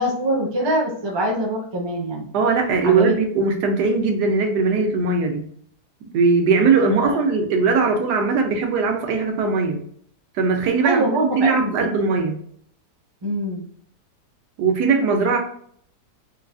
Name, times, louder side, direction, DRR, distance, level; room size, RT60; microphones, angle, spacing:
voice 1, 0.0-2.3 2.8-3.1 6.4-6.7 7.0-7.2 10.8-11.9 13.2-13.7, right 1 dB, 35° right, -1 dB, 0.4 m, -24 dB
voice 2, 2.3-5.4 6.0-9.8 10.3-12.4 14.6-15.4, right 4 dB, 80° right, 4 dB, 1.2 m, -20 dB
3.9 x 2.4 x 2.3 m, 0.62 s
omnidirectional pair, 1.8 m